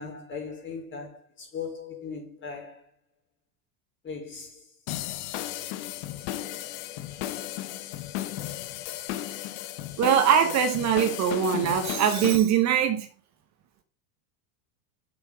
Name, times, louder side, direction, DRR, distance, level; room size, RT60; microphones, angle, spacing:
voice 1, 0.0-2.8 4.0-4.6, left 5 dB, 25° left, 4.6 m, -38 dB
sound 1, 4.9-12.4, left 13 dB, 65° left, 1.2 m, -34 dB
voice 2, 10.0-13.1, right 9 dB, 40° right, 1.3 m, -22 dB
7.5 x 7.1 x 5.2 m
supercardioid pair, 125°, 42 cm